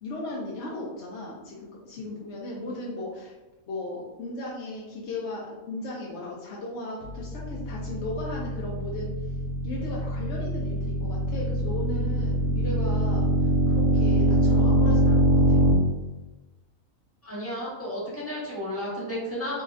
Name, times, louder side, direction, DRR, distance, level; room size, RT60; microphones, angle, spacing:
voice 1, 0.0-3.3 3.7-9.1 9.6-13.3 13.7-15.7, left 2 dB, 60° left, -4 dB, 0.9 m, -36 dB
sound 1, 7.0-15.7, equal, 70° right, 1.0 m, -24 dB
voice 2, 17.2-19.6, equal, 10° left, -7 dB, 1.1 m, -33 dB
3.8 x 3.1 x 2.4 m, 1.1 s
omnidirectional pair, 1.4 m